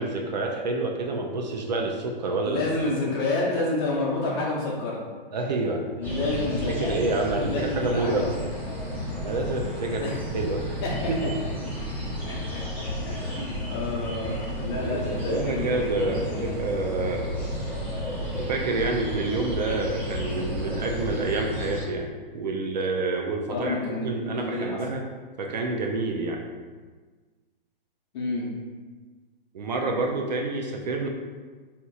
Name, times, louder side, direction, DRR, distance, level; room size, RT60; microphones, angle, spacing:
voice 1, 0.0-2.6 5.3-5.8 6.1-6.3 6.7-8.3 9.2-10.1 10.3-10.8 11.1-11.2 14.8-17.3 18.4-25.0 25.4-26.4 29.5-31.1, right 3 dB, 50° right, 1 dB, 0.4 m, -28 dB
voice 2, 2.4-5.0 6.0-7.0 7.4-8.3 9.9-10.2 10.8-10.9 12.2-16.6 23.5-24.8 28.1-28.5, left 2 dB, 25° left, -4 dB, 0.7 m, -29 dB
sound 1, 6.0-21.8, equal, 5° right, 1.2 m, -32 dB
4.4 x 2.8 x 2.3 m, 1.4 s
hypercardioid pair, 160°, 29 cm